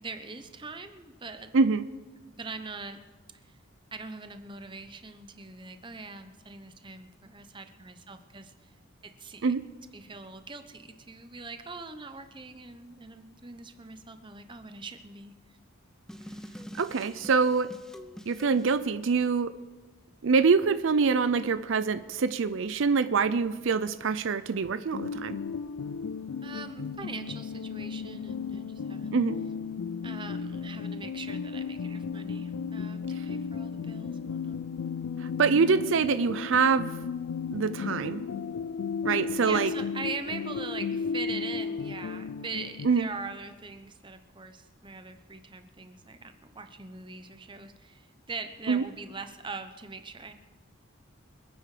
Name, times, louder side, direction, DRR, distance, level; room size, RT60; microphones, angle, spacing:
voice 1, 0.0-1.5 2.3-3.0 3.3-3.5 3.9-8.7 9.0-9.5 9.9-15.6 26.4-29.2 30.0-34.6 39.4-50.3, right 4 dB, 25° right, 8 dB, 0.9 m, -42 dB
voice 2, 1.5-1.8 9.4-9.6 16.8-17.7 18.3-19.5 20.2-25.4 29.1-29.4 35.4-36.9 37.5-38.2 39.0-39.7 42.8-43.1 48.7-48.8, right 5 dB, 65° right, 13 dB, 0.5 m, -25 dB
sound 1, 16.1-18.7, equal, 5° left, 0.6 m, -45 dB
sound 2, 24.9-42.9, left 6 dB, 80° left, 0.4 m, -34 dB
25.5 x 9.3 x 5.0 m, 1.3 s
head